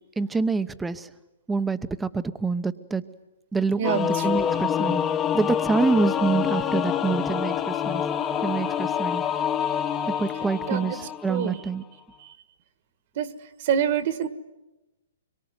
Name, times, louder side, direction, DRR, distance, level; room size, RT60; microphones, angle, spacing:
voice 1, 0.2-1.1 1.5-3.0 3.5-5.0 5.3-8.0 8.4-9.2 10.1-11.8, right 4 dB, 5° right, 12 dB, 0.9 m, -26 dB
Singing / Musical instrument, 3.8-11.6, left 8 dB, 15° left, 1.0 m, -26 dB
voice 2, 3.8-4.3 10.7-11.0 11.3-11.6 12.2-12.3 13.2-13.3 13.6-14.3, right 8 dB, 45° right, 13 dB, 1.7 m, -26 dB
24.5 x 23.0 x 9.6 m, 1.0 s
hypercardioid pair, 155°, 0 cm